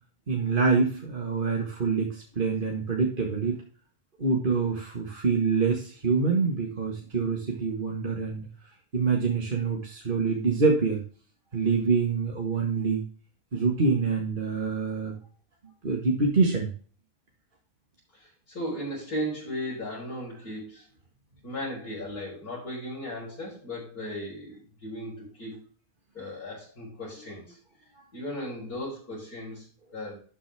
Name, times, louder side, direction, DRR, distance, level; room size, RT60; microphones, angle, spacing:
voice 1, 0.3-3.6 4.2-8.5 8.9-11.0 11.5-13.0 13.5-15.1 15.8-16.7, right 4 dB, 35° right, 0 dB, 1.9 m, -26 dB
voice 2, 18.1-20.9 21.4-25.6 26.1-27.4 28.1-29.7 29.9-30.2, equal, 85° left, -9 dB, 5.2 m, -36 dB
12.0 x 7.5 x 3.5 m, 0.41 s
omnidirectional pair, 1.6 m